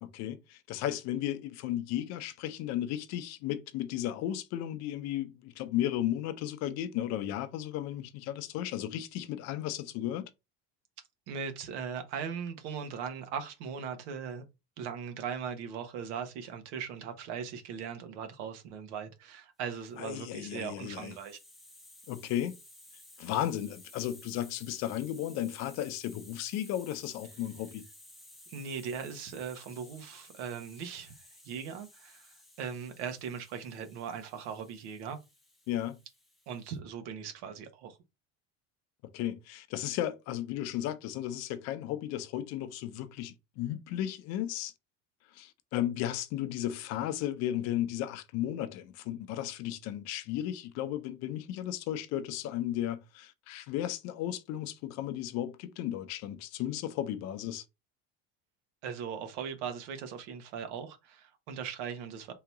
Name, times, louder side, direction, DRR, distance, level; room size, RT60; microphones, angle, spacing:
voice 1, 0.0-10.3 20.0-21.1 22.1-22.5 23.2-27.9 35.7-36.0 39.0-44.7 45.3-57.6, left 12 dB, 50° left, 0.6 m, -34 dB
voice 2, 11.3-14.4 14.8-21.4 28.5-31.1 31.4-35.2 36.5-38.0 58.8-62.3, right 7 dB, 85° right, 1.3 m, -39 dB
Hiss, 20.1-36.8, left 1 dB, ahead, 0.6 m, -56 dB
3.9 x 2.8 x 4.7 m
cardioid pair, 160°, 33 cm